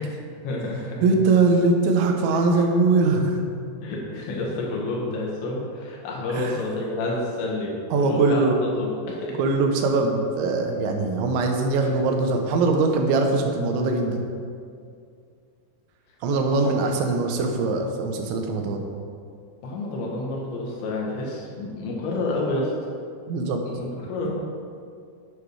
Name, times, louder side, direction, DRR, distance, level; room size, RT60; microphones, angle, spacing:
voice 1, 0.4-1.2 2.5-2.6 3.8-8.4 8.8-9.4 11.8-11.9 16.5-16.7 19.6-22.7 23.6-24.3, left 2 dB, 75° left, -3 dB, 3.9 m, -29 dB
voice 2, 1.0-3.4 6.3-6.6 7.9-8.6 9.4-14.2 16.2-18.8 23.3-23.6, right 3 dB, 90° right, 3 dB, 3.4 m, -22 dB
10.0 x 8.3 x 4.8 m, 2.3 s
omnidirectional pair, 5.1 m